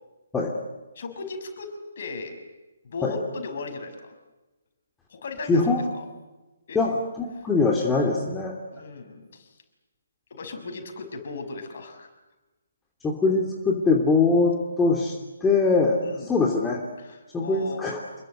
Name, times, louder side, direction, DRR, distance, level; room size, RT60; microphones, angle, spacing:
voice 1, 0.9-2.4 2.8-4.1 5.1-6.0 6.7-6.8 7.4-7.5 8.7-9.5 10.3-12.1 16.0-16.3 17.0-17.8, left 3 dB, 45° left, 6 dB, 5.9 m, -37 dB
voice 2, 5.5-5.8 6.7-8.5 13.0-15.2 15.4-16.0 16.3-16.8 17.3-18.0, left 3 dB, 10° left, -1 dB, 2.9 m, -22 dB
27.5 x 23.0 x 7.9 m, 1.1 s
figure-of-eight pair, 135°, 0 cm